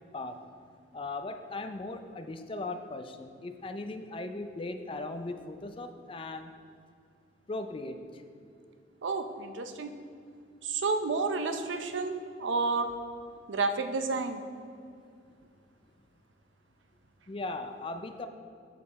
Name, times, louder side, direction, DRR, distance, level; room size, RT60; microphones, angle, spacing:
voice 1, 0.1-0.5 0.9-6.5 7.5-8.2 17.3-18.3, left 2 dB, 30° left, 8 dB, 0.4 m, -38 dB
voice 2, 9.0-9.9 10.6-12.9 13.5-14.4, right 3 dB, 85° right, 8 dB, 0.6 m, -30 dB
7.5 x 6.7 x 4.1 m, 2.4 s
head